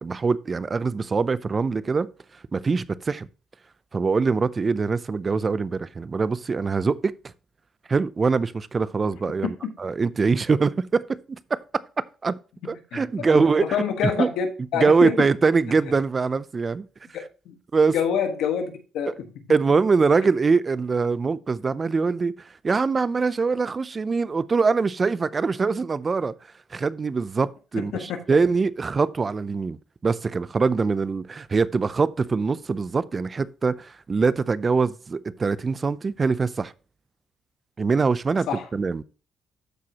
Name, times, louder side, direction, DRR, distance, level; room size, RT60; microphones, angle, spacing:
voice 1, 0.0-2.1 2.5-3.3 3.9-7.1 7.9-11.6 12.2-12.3 12.6-13.7 14.0-14.3 14.7-16.8 17.7-17.9 19.1-19.2 19.5-26.3 26.7-29.8 30.0-36.7 37.8-38.5 38.7-39.0, right 4 dB, 35° right, 0.5 m, -23 dB
voice 2, 13.3-14.5 14.7-15.3 17.1-17.5 17.9-19.3 27.8-28.2 38.5-38.7, left 7 dB, 85° left, 1.4 m, -27 dB
13.0 x 4.7 x 2.9 m
cardioid pair, 90°, 0 cm